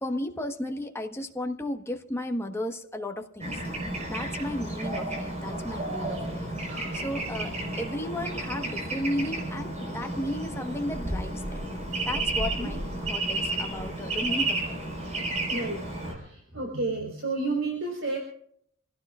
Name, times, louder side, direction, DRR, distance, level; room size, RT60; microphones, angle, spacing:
voice 1, 0.0-3.5 4.1-11.6 12.0-14.8, left 1 dB, 10° left, 1.3 m, -34 dB
Bird / Traffic noise roadway noise, 3.4-16.1, right 2 dB, 30° right, 4.5 m, -32 dB
voice 2, 6.7-7.0 12.6-12.8 15.5-15.8 16.0-18.2, right 3 dB, 60° right, 3.9 m, -31 dB
27.0 x 16.5 x 2.5 m
head